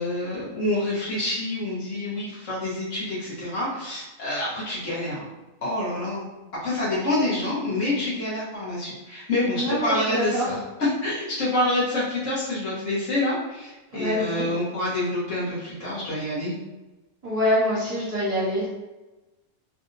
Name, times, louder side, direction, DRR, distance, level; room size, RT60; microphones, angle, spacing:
voice 1, 0.0-5.2 5.6-6.3 6.6-10.6 11.0-16.5, left 1 dB, 60° left, -8 dB, 1.5 m, -27 dB
voice 2, 9.6-10.5 13.9-14.5 17.2-18.7, equal, 25° right, -10 dB, 1.4 m, -25 dB
3.4 x 2.6 x 2.6 m, 1.1 s
omnidirectional pair, 1.5 m